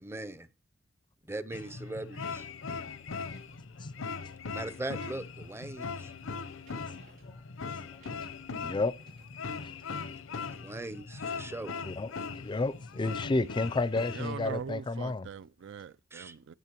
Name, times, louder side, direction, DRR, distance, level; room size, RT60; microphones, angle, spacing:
voice 1, 0.0-0.5 1.3-2.5 4.5-6.1 10.4-11.8 16.1-16.4, right 2 dB, 15° right, 0.6 m, -40 dB
sound 1, 1.5-14.6, left 5 dB, 85° left, 0.7 m, -40 dB
sound 2, 3.1-9.3, right 2 dB, 50° right, 3.9 m, -63 dB
voice 2, 8.6-8.9 9.6-9.7 11.8-12.1 12.4-15.3, left 3 dB, 25° left, 0.4 m, -31 dB
voice 3, 14.1-16.5, right 6 dB, 65° right, 0.4 m, -41 dB
16.0 x 6.4 x 3.0 m
head